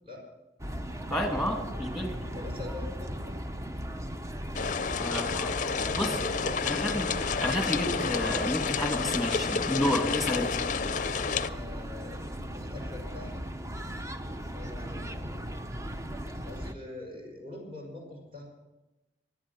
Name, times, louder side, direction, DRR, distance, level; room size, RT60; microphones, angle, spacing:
sound 1, 0.6-16.7, equal, 15° right, 0.7 m, -37 dB
voice 1, 1.1-2.1 5.0-5.6 6.0-6.1 6.6-7.1 7.4-10.5, left 1 dB, ahead, 2 dB, 2.7 m, -30 dB
voice 2, 2.3-3.4 5.7-6.7 11.3-13.4 14.5-15.5 16.4-18.4, left 2 dB, 35° right, 0 dB, 5.9 m, -43 dB
sound 2, 4.6-11.5, left 6 dB, 45° left, 0.5 m, -30 dB
17.0 x 11.5 x 6.2 m, 1.0 s
head